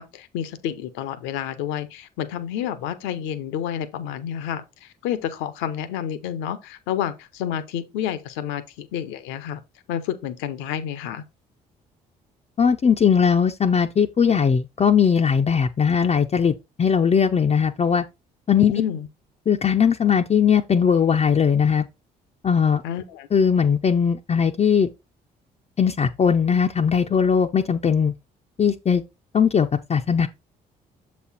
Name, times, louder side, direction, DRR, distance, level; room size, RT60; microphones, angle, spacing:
voice 1, 0.0-9.6 9.9-11.2 18.7-19.1 22.8-23.3, left 10 dB, 75° left, 0.8 m, -29 dB
voice 2, 12.6-18.0 18.5-18.7 19.5-21.8 22.4-22.8 23.3-24.9 25.8-28.1 28.6-29.0 29.3-30.3, left 7 dB, 35° left, 0.6 m, -19 dB
7.0 x 4.2 x 4.0 m
hypercardioid pair, 50°, 20 cm